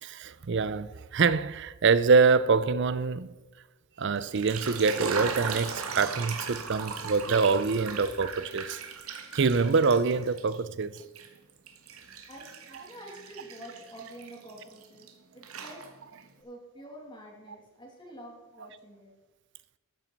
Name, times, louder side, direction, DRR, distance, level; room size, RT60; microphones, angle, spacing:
voice 1, 0.0-3.3 4.0-8.8 9.3-11.0, right 4 dB, 55° right, 0.5 m, -25 dB
sound 1, 4.2-10.6 11.0-15.1 15.4-16.2, right 5 dB, 75° right, 1.4 m, -38 dB
voice 2, 12.3-15.8 16.1-19.1, right 1 dB, 20° left, 2.7 m, -48 dB
13.5 x 9.2 x 4.6 m
head